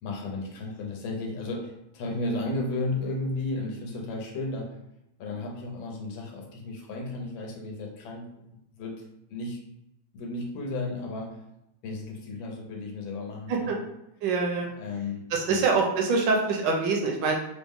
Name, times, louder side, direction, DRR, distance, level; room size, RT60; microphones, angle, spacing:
voice 1, 0.0-4.8 5.2-9.6 10.1-11.4 11.8-13.8 14.6-15.6, left 2 dB, 80° left, 1 dB, 1.5 m, -34 dB
voice 2, 14.2-14.7 15.3-17.3, right 4 dB, 70° right, 1 dB, 1.2 m, -25 dB
3.9 x 2.0 x 3.5 m, 0.85 s
omnidirectional pair, 2.1 m